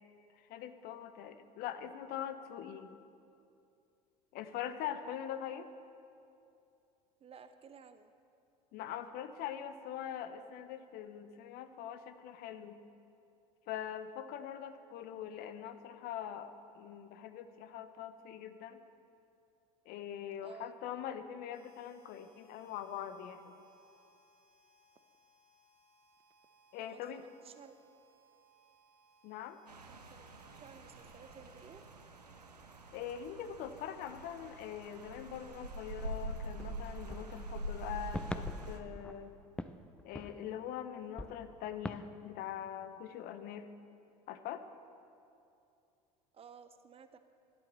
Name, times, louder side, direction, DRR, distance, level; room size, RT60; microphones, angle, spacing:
voice 1, 0.4-3.0 4.3-5.7 8.7-12.8 13.7-18.8 19.9-23.6 26.7-27.2 29.2-29.6 32.9-39.3 40.0-43.7 44.3-44.6, left 9 dB, 50° left, 10 dB, 0.8 m, -43 dB
voice 2, 7.2-8.1 20.4-20.7 26.8-27.7 29.9-30.2 30.6-31.8 46.3-47.2, right 6 dB, 30° right, 10 dB, 0.7 m, -54 dB
Harmonica, 21.5-32.5, right 2 dB, 50° right, 1.5 m, -67 dB
Rain, 29.7-38.8, right 1 dB, 90° right, 0.9 m, -45 dB
sound 1, 36.6-40.8 41.2-42.1, left 1 dB, 5° left, 0.5 m, -45 dB
17.0 x 12.0 x 4.1 m, 2.6 s
figure-of-eight pair, 70°, 20 cm